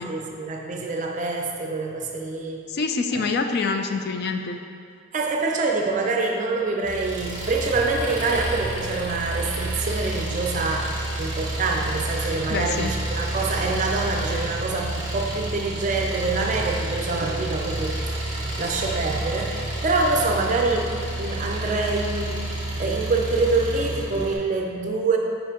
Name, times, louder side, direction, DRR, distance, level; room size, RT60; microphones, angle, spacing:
voice 1, 0.0-2.6 3.1-3.2 5.1-10.9 11.2-25.2, right 3 dB, 35° right, 1 dB, 0.5 m, -26 dB
voice 2, 2.7-4.6 12.5-13.0, left 4 dB, 50° left, 6 dB, 0.4 m, -26 dB
Engine, 6.8-24.4, right 1 dB, 20° right, 1.2 m, -30 dB
6.9 x 5.1 x 2.9 m, 2.3 s
head